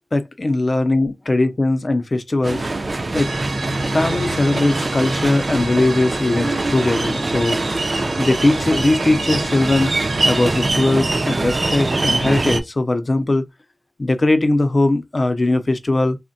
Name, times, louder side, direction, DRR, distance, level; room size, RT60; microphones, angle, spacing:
voice 1, 0.1-2.6 3.1-3.3 3.9-7.6 8.2-9.9 10.2-13.4 14.0-16.2, left 2 dB, 50° left, 0.4 m, -19 dB
sound 1, 2.4-12.6, right 2 dB, 60° right, 0.4 m, -23 dB
sound 2, 3.1-10.7, right 2 dB, 85° right, 0.8 m, -30 dB
3.4 x 2.1 x 2.6 m
wide cardioid pair, 65°, 0 cm